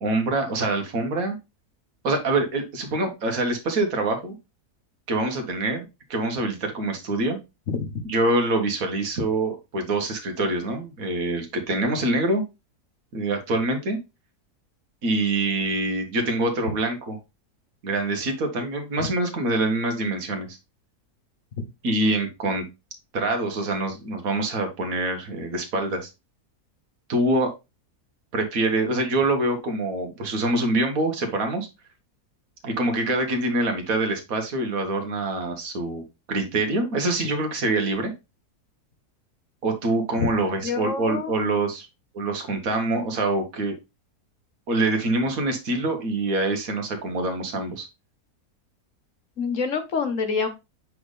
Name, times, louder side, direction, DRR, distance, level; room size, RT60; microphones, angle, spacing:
voice 1, 0.0-1.4 2.0-4.4 5.1-7.4 8.0-12.4 13.1-14.0 15.0-17.2 17.8-20.6 21.8-22.7 23.1-26.1 27.1-27.5 28.3-31.7 32.6-36.0 36.3-38.1 39.6-41.9 42.1-43.7 44.7-47.9, right 2 dB, 60° right, 4 dB, 1.7 m, -25 dB
voice 2, 40.6-41.3 49.4-50.5, left 5 dB, 55° left, 7 dB, 1.4 m, -26 dB
7.7 x 4.0 x 3.3 m, 0.25 s
omnidirectional pair, 1.7 m